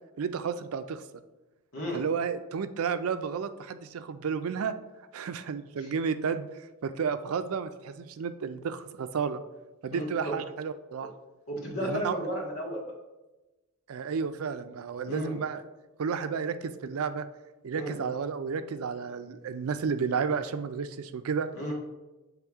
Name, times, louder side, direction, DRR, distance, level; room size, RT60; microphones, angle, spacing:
voice 1, 0.2-1.0 1.9-4.7 5.1-9.4 9.8-11.1 11.8-12.2 13.9-15.6 16.0-17.3 17.6-21.5, right 6 dB, 80° right, 11 dB, 0.4 m, -32 dB
voice 2, 9.9-10.3 11.5-12.8 15.0-15.4 17.7-17.9 21.5-21.7, equal, 75° left, -3 dB, 1.7 m, -33 dB
7.6 x 3.5 x 3.5 m, 1.1 s
head